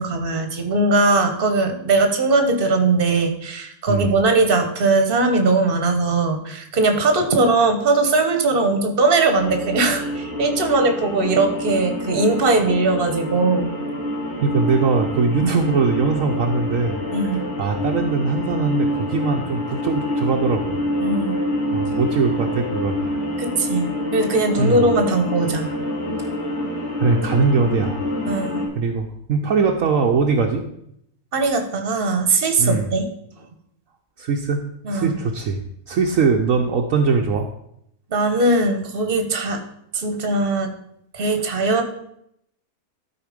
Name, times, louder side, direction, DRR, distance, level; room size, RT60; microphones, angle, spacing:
voice 1, 0.0-13.7 15.4-15.6 17.1-17.4 21.0-21.4 23.4-25.7 28.3-28.6 31.3-33.0 34.8-35.1 38.1-39.6 39.9-40.7 41.1-41.8, right 3 dB, 40° right, 6 dB, 1.3 m, -20 dB
voice 2, 3.9-4.2 14.4-17.0 17.6-20.8 21.7-23.1 24.6-24.8 27.0-28.0 28.8-30.6 32.6-32.9 34.2-34.6 34.9-35.6 35.9-37.5, right 4 dB, 65° right, 2 dB, 1.1 m, -21 dB
sound 1, 9.3-28.7, left 1 dB, 45° left, 3.5 m, -27 dB
12.5 x 4.6 x 5.1 m, 0.75 s
omnidirectional pair, 1.6 m